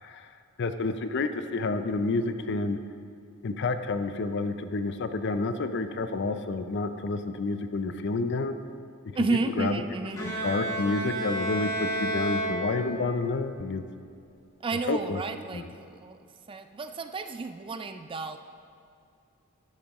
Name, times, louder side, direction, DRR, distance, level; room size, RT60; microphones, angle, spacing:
voice 1, 0.6-2.8 3.4-8.6 9.6-9.7 10.2-13.8 14.9-15.2 15.5-15.7, left 3 dB, 50° left, 9 dB, 0.5 m, -29 dB
voice 2, 9.2-10.2 14.6-16.2 16.5-18.4, right 3 dB, 25° right, 8 dB, 0.3 m, -31 dB
Bowed string instrument, 10.2-13.3, right 1 dB, 15° left, 1.5 m, -31 dB
12.5 x 10.5 x 3.0 m, 2.4 s
head